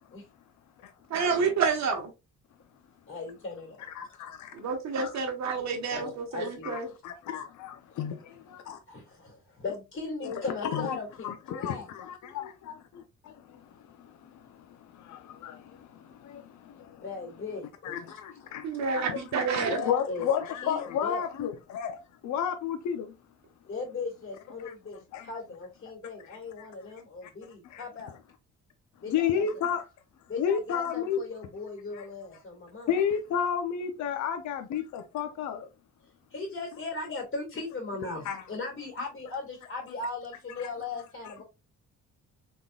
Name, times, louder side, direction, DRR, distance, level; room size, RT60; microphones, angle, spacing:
voice 1, 1.1-2.1 4.5-6.9 18.6-19.8, right 5 dB, 65° right, 1.3 m, -29 dB
voice 2, 3.1-3.8 5.9-6.8 7.9-8.0 8.9-11.9 16.9-18.0 19.5-20.3 20.6-21.2 23.7-28.2 29.0-29.5 30.3-32.9 36.3-41.4, left 3 dB, 40° left, 2.0 m, -38 dB
voice 3, 3.9-4.6 5.0-5.2 6.4-8.8 10.2-17.0 17.8-18.7 19.0-19.2 19.5-23.1 24.6-24.7 25.1-25.3 26.2-26.7 27.2-27.3 27.6-27.8 29.1-29.8 30.4-31.2 31.9-32.1 32.9-35.7 38.2-38.4, left 8 dB, 70° left, 0.7 m, -33 dB
3.7 x 3.7 x 2.3 m
cardioid pair, 90°, 30 cm